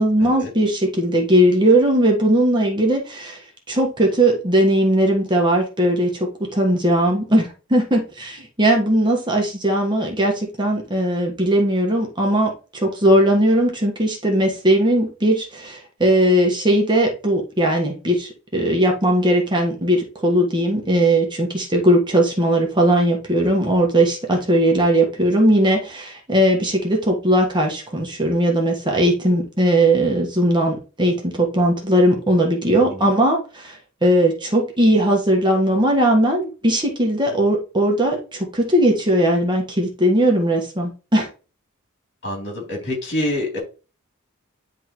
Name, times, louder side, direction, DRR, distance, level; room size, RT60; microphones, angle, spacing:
voice 1, 0.0-41.3, right 1 dB, 20° right, 0 dB, 1.3 m, -18 dB
voice 2, 32.7-33.1 42.2-43.6, left 1 dB, 55° left, -1 dB, 3.0 m, -27 dB
10.0 x 3.7 x 3.0 m, 0.33 s
head